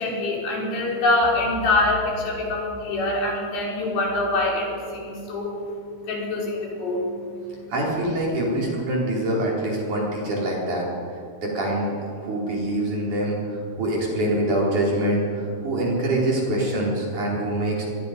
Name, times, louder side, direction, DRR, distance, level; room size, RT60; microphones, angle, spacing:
voice 1, 0.0-7.7, left 2 dB, 75° left, -2 dB, 6.3 m, -25 dB
voice 2, 7.7-10.9 11.4-11.9 12.2-17.8, right 1 dB, 45° right, -4 dB, 5.7 m, -24 dB
24.0 x 22.0 x 5.2 m, 2.4 s
omnidirectional pair, 4.8 m